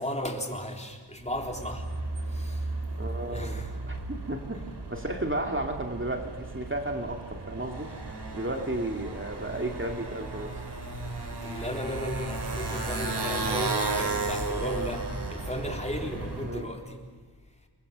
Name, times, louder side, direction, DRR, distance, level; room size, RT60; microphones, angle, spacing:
voice 1, 0.0-1.9 2.3-2.7 3.3-3.7 11.4-17.0, equal, 15° left, 2 dB, 3.8 m, -35 dB
Motorcycle, 1.3-16.6, right 3 dB, 80° right, 3.5 m, -34 dB
voice 2, 3.0-4.6 4.9-7.9 8.3-10.6 16.4-16.7, right 1 dB, 30° right, 3 dB, 2.5 m, -33 dB
29.0 x 24.0 x 6.8 m, 1.5 s
wide cardioid pair, 75°, 40 cm